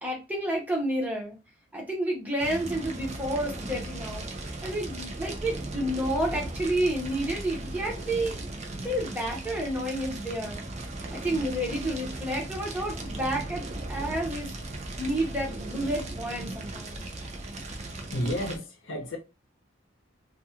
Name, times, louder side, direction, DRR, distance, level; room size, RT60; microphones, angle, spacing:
voice 1, 0.0-1.4 1.7-4.3 4.6-8.4 8.8-10.6 11.1-14.5 15.0-17.0, right 1 dB, 10° right, 0.8 m, -30 dB
Fire, 2.4-18.6, right 2 dB, 35° right, 0.5 m, -37 dB
voice 2, 18.1-19.2, equal, 80° left, 0.7 m, -31 dB
2.4 x 2.3 x 2.7 m
head